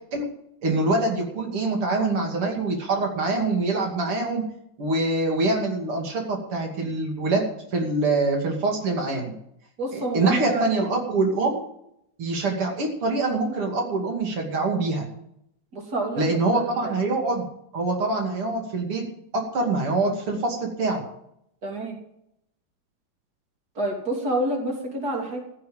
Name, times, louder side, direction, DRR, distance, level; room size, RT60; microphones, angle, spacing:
voice 1, 0.6-4.4 4.8-7.4 7.7-9.3 9.9-11.6 12.2-15.1 16.2-17.4 17.7-19.0 19.3-21.0, right 2 dB, 90° right, 1 dB, 3.4 m, -24 dB
voice 2, 9.8-10.7 15.7-16.2 16.5-16.9 21.6-22.0 23.8-25.4, right 1 dB, 45° right, 1 dB, 3.7 m, -28 dB
15.0 x 7.5 x 8.9 m, 0.75 s
omnidirectional pair, 2.4 m